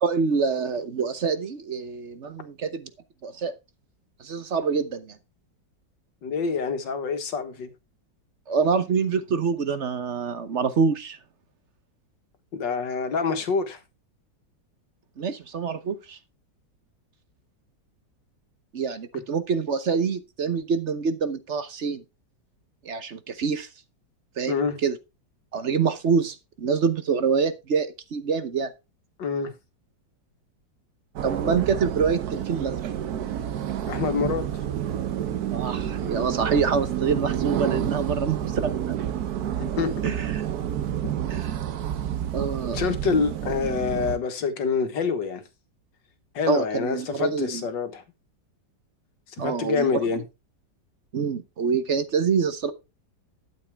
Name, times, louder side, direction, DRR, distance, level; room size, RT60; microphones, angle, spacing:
voice 1, 0.0-2.9 3.2-3.5 4.2-5.2 8.5-11.2 15.2-16.2 18.7-22.0 22.8-23.7 24.4-25.0 25.5-28.7 31.2-32.8 35.5-38.9 40.0-40.4 41.3-41.5 42.3-42.8 46.5-47.6 49.4-50.1 51.1-52.7, right 5 dB, 50° right, 1.0 m, -26 dB
voice 2, 6.2-7.7 12.5-13.8 24.5-24.8 29.2-29.5 33.9-34.4 39.6-39.9 42.7-45.4 46.3-48.0 49.4-50.2, left 5 dB, 75° left, 2.1 m, -26 dB
sound 1, 31.2-44.2, right 10 dB, 65° right, 1.3 m, -29 dB
12.0 x 7.5 x 3.5 m
omnidirectional pair, 2.0 m